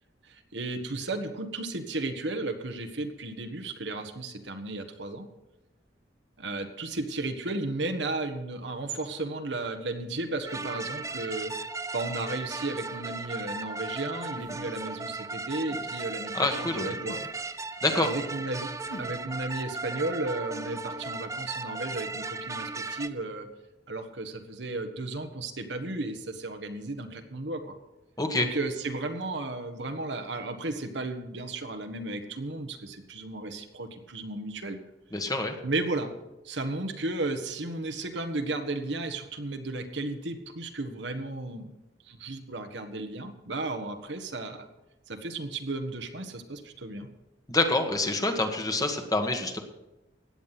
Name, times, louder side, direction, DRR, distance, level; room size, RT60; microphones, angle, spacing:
voice 1, 0.2-5.3 6.4-11.5 11.9-17.2 17.9-18.7 19.0-23.5 23.9-27.7 28.3-34.8 35.6-36.1 36.4-41.7 42.1-44.7 45.1-47.1, right 2 dB, 75° right, 7 dB, 1.5 m, -34 dB
sound 1, 10.5-23.1, right 3 dB, 15° right, 0.6 m, -36 dB
sound 2, 12.9-13.1 14.3-15.0 15.7-15.9 17.1-17.3 18.9-19.2, equal, 75° left, 1.7 m, -44 dB
voice 2, 16.3-16.9 17.8-18.1 28.2-28.5 35.1-35.5 47.5-49.6, left 2 dB, 20° left, 4 dB, 1.5 m, -26 dB
16.0 x 9.6 x 5.9 m, 0.97 s
head